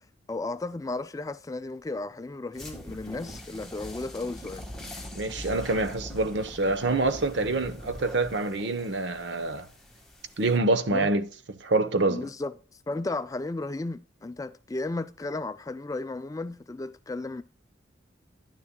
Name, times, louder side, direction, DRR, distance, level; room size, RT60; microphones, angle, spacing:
voice 1, 0.3-4.7 10.9-11.1 12.1-12.5 12.9-17.4, left 2 dB, 15° left, 0.3 m, -34 dB
sound 1, 2.5-10.6, left 1 dB, ahead, 1.6 m, -43 dB
voice 2, 5.1-9.7 10.4-12.3, right 2 dB, 65° right, 0.8 m, -26 dB
10.5 x 9.9 x 2.2 m
head